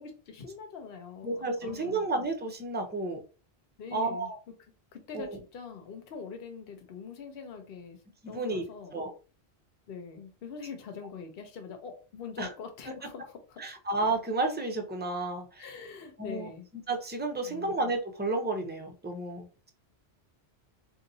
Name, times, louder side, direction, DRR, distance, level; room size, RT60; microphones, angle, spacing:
voice 1, 0.0-2.1 3.8-4.5 4.9-8.0 8.3-9.0 9.9-13.7 15.6-16.7 17.4-17.8, left 6 dB, 65° left, 5 dB, 0.9 m, -44 dB
voice 2, 1.2-3.2 3.9-4.4 5.1-5.4 8.2-8.6 8.9-9.1 12.4-12.5 13.6-15.6 16.2-16.5 16.9-19.7, right 2 dB, 15° right, 3 dB, 0.4 m, -31 dB
4.0 x 2.6 x 2.6 m, 0.35 s
omnidirectional pair, 1.1 m